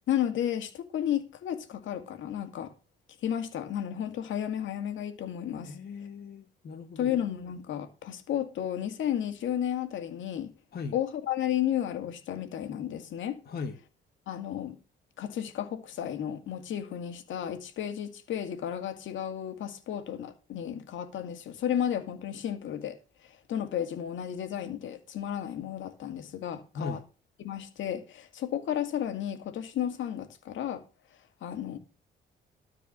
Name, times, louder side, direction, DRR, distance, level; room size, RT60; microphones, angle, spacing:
voice 1, 0.1-2.7 3.2-5.8 7.0-10.5 10.9-13.4 14.3-14.8 15.2-23.0 23.2-27.0 27.4-30.8 31.4-31.8, left 10 dB, 75° left, 2.2 m, -33 dB
voice 2, 5.6-7.2 10.7-11.0 13.4-13.7 26.7-27.0, left 4 dB, 50° left, 1.8 m, -38 dB
13.0 x 4.9 x 7.3 m
cardioid pair, 90°, 20 cm